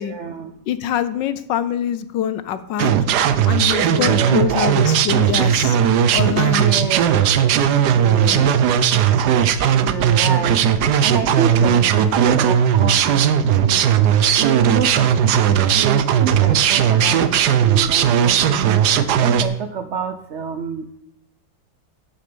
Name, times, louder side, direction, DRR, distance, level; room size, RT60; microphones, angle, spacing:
voice 1, 0.0-0.5 3.8-4.8 6.4-8.5 9.3-13.2 13.6-13.9 14.4-18.8 19.2-20.8, right 6 dB, 80° right, 9 dB, 0.6 m, -28 dB
voice 2, 0.7-2.9 3.5-5.8 6.1-6.7 8.2-8.5, left 10 dB, 70° left, 13 dB, 1.4 m, -24 dB
sound 1, 2.8-19.4, right 9 dB, 65° right, 1.2 m, -17 dB
11.5 x 6.7 x 6.8 m, 0.76 s
omnidirectional pair, 2.1 m